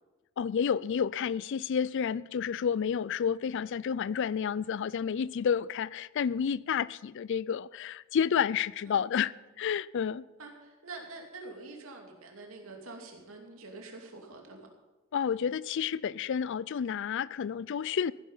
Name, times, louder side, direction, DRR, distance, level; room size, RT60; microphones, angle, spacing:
voice 1, 0.4-10.3 15.1-18.1, left 7 dB, 60° left, 0.4 m, -30 dB
voice 2, 10.4-14.7, right 3 dB, 90° right, 2.6 m, -46 dB
15.5 x 10.5 x 5.6 m
head